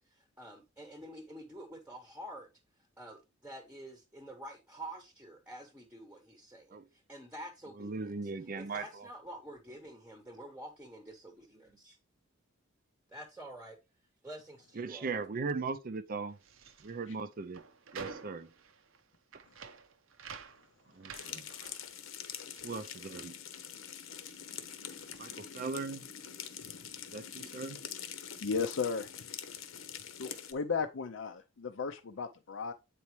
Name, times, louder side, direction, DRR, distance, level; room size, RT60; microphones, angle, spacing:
voice 1, 0.0-2.5 3.0-8.1 8.6-12.0 13.1-13.8 14.2-15.1, right 1 dB, 5° right, 0.9 m, -48 dB
voice 2, 7.8-9.1 14.8-16.4 16.8-17.6 17.9-18.5 20.9-21.5 22.6-23.3 25.2-26.1 27.1-27.8, right 4 dB, 45° right, 0.5 m, -38 dB
sound 1, 16.3-23.8 24.0-25.5, right 5 dB, 75° right, 0.7 m, -50 dB
sound 2, 21.1-30.5, left 8 dB, 85° left, 0.9 m, -45 dB
voice 3, 28.4-29.1 30.2-32.7, left 5 dB, 65° left, 0.5 m, -35 dB
8.3 x 4.2 x 3.1 m
head